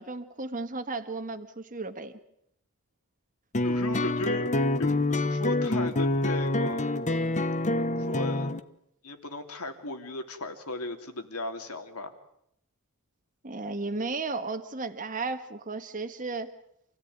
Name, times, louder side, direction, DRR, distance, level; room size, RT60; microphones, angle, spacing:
voice 1, 0.0-2.1 13.4-16.5, right 3 dB, 35° right, 7 dB, 1.6 m, -34 dB
sound 1, 3.5-8.6, left 2 dB, 35° left, 1.1 m, -27 dB
voice 2, 3.6-4.5 4.8-6.9 7.8-8.5 9.0-12.1, left 2 dB, 75° left, 6 dB, 3.2 m, -36 dB
28.0 x 16.5 x 9.5 m, 0.76 s
head